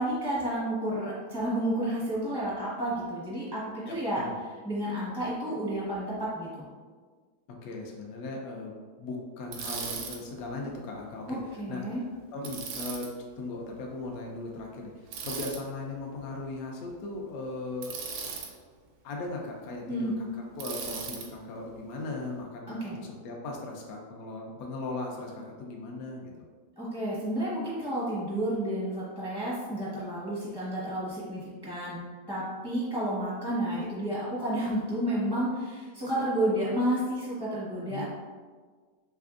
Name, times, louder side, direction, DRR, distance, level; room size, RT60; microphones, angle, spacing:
voice 1, 0.0-3.6 3.9-4.2 4.6-6.6 11.3-12.0 19.9-20.1 22.7-22.9 26.8-32.0 32.3-38.0, right 1 dB, 10° left, -9 dB, 0.4 m, -31 dB
voice 2, 3.8-4.4 7.6-12.0 12.3-13.1 13.4-17.9 19.0-20.3 20.6-26.3 37.9-38.0, left 2 dB, 70° left, -1 dB, 0.9 m, -38 dB
Bicycle, 9.5-10.2 12.4-13.1 15.1-15.6 17.8-18.5 20.6-21.3, right 5 dB, 85° right, 1.2 m, -37 dB
3.4 x 3.1 x 2.4 m, 1.5 s
omnidirectional pair, 1.8 m